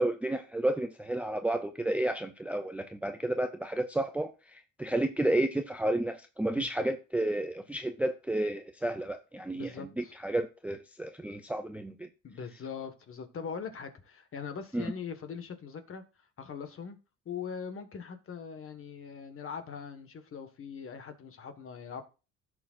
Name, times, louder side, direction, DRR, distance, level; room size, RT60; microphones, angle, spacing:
voice 1, 0.0-12.1 14.7-14.9, right 1 dB, 5° right, 0.5 m, -31 dB
voice 2, 9.6-10.1 12.2-16.0 16.4-17.0 17.3-22.0, left 6 dB, 40° left, 1.6 m, -41 dB
15.5 x 6.4 x 2.5 m
cardioid pair, 135°, 35 cm